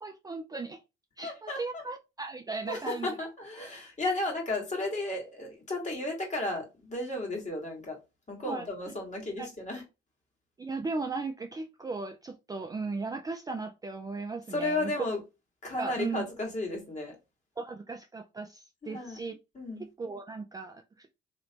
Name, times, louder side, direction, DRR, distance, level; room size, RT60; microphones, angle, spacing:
voice 1, 0.0-0.8 1.2-3.2 8.5-8.7 9.4-9.5 10.6-14.9 15.8-16.3 17.6-19.4 19.8-21.1, right 3 dB, 20° right, 0.4 m, -37 dB
voice 2, 1.2-1.8 2.7-8.0 8.3-9.8 14.5-15.2 15.6-17.1 18.8-19.2 19.6-19.9, left 2 dB, 35° left, 1.7 m, -34 dB
3.2 x 3.0 x 2.9 m
cardioid pair, 90°, 20 cm